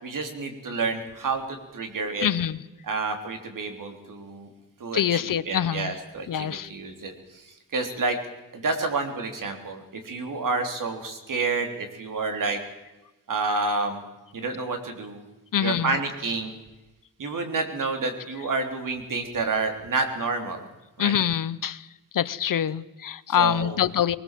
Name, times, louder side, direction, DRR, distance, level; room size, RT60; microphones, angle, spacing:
voice 1, 0.0-2.3 2.8-4.5 4.8-8.2 8.5-12.6 13.3-14.0 14.3-15.2 15.6-16.5 17.2-20.7 21.0-21.1 23.3-23.9, right 3 dB, 60° right, 5 dB, 3.6 m, -29 dB
voice 2, 2.2-2.6 4.9-5.9 6.3-6.7 15.5-15.9 21.0-21.8 22.1-24.2, left 9 dB, 60° left, 17 dB, 0.8 m, -25 dB
22.5 x 20.5 x 7.5 m, 1.0 s
wide cardioid pair, 145°, 36 cm